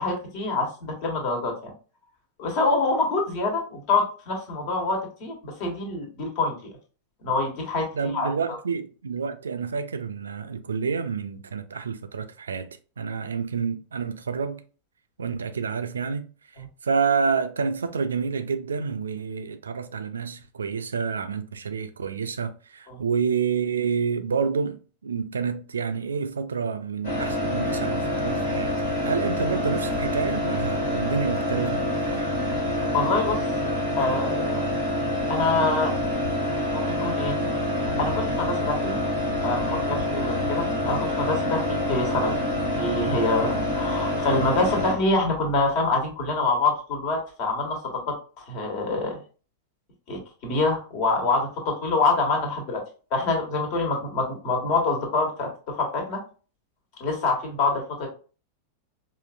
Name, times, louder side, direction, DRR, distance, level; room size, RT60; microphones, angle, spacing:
voice 1, 0.0-1.7 2.4-6.6 7.2-7.9 8.1-8.6 22.9-23.0 32.9-34.7 35.3-35.9 36.7-37.4 38.0-38.9 39.4-42.4 42.7-49.2 50.1-52.8 53.1-56.2 57.0-58.1, left 3 dB, 45° left, 1.4 m, -26 dB
voice 2, 7.9-12.7 13.0-14.6 15.2-16.3 16.8-32.2, right 5 dB, 70° right, 0.4 m, -28 dB
sound 1, 27.0-44.9, left 1 dB, 60° left, 1.5 m, -26 dB
4.9 x 2.6 x 2.5 m
figure-of-eight pair, 90°, 0 cm